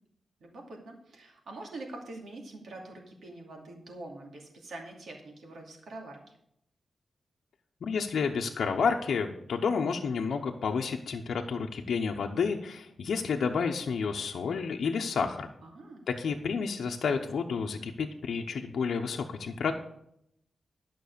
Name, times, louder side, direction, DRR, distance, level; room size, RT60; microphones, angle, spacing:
voice 1, 0.4-6.2 15.6-16.1, right 2 dB, 70° right, 1 dB, 2.6 m, -45 dB
voice 2, 7.8-15.5 16.1-19.7, left 5 dB, 75° left, 2 dB, 0.8 m, -30 dB
12.0 x 6.1 x 6.7 m, 0.74 s
wide cardioid pair, 175°, 0 cm